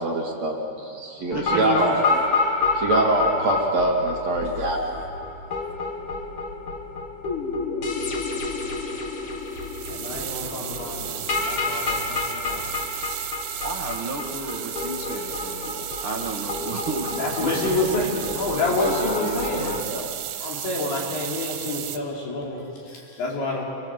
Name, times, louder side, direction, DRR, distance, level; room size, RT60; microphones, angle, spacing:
voice 1, 0.0-2.1 2.7-5.0, right 2 dB, 45° right, -1 dB, 3.0 m, -24 dB
sound 1, 1.3-19.8, left 3 dB, 50° left, 1.6 m, -29 dB
voice 2, 1.3-2.0 13.6-20.2, right 3 dB, 65° right, 0 dB, 1.3 m, -32 dB
sound 2, 9.5-22.0, right 12 dB, 80° right, 3.6 m, -34 dB
voice 3, 9.9-12.7 14.6-14.7 15.6-15.7 17.1-19.8 20.4-23.6, left 2 dB, 70° left, -3 dB, 6.9 m, -28 dB
29.0 x 24.0 x 8.1 m, 2.5 s
omnidirectional pair, 5.4 m